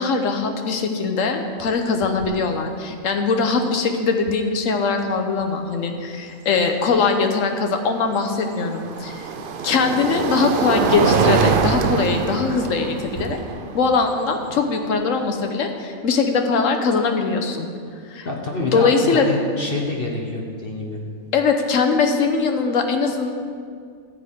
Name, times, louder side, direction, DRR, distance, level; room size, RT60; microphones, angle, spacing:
voice 1, 0.0-9.3 9.6-13.4 13.7-17.7 18.1-18.3 18.6-19.3 21.3-23.3, left 4 dB, 65° left, 5 dB, 1.2 m, -21 dB
sound 1, 1.6-1.7 2.0-2.4 4.3-4.4 7.4-15.5, right 5 dB, 65° right, 0.5 m, -24 dB
voice 2, 18.2-21.0, left 2 dB, 45° left, 0 dB, 1.0 m, -27 dB
14.0 x 8.5 x 3.6 m, 2.2 s
omnidirectional pair, 1.5 m